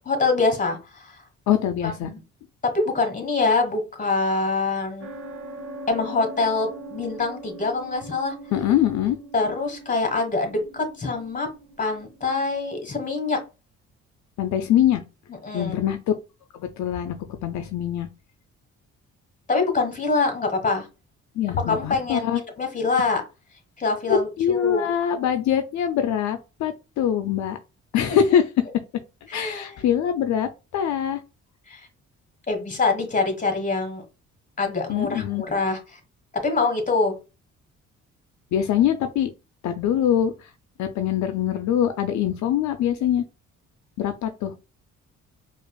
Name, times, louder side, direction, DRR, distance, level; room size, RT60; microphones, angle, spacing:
voice 1, 0.0-1.2 1.8-2.2 2.7-5.1 5.9-8.3 9.3-11.5 11.8-13.4 15.4-15.7 19.5-20.9 21.6-23.2 23.8-24.9 29.3-29.8 31.7-31.9 32.5-34.0 34.6-36.0 36.3-37.2, left 3 dB, 25° left, 1.4 m, -25 dB
voice 2, 1.5-2.1 8.5-9.2 14.4-15.0 15.5-16.1 16.5-17.2 17.4-18.1 21.4-22.4 24.1-27.6 27.9-28.4 29.3-31.2 34.9-35.4 38.5-39.3 39.6-40.5 40.8-43.2 44.0-44.5, left 9 dB, 70° left, 0.5 m, -23 dB
sound 1, 5.0-12.4, right 1 dB, 45° right, 0.9 m, -41 dB
4.8 x 2.4 x 2.3 m
cardioid pair, 90°, 30 cm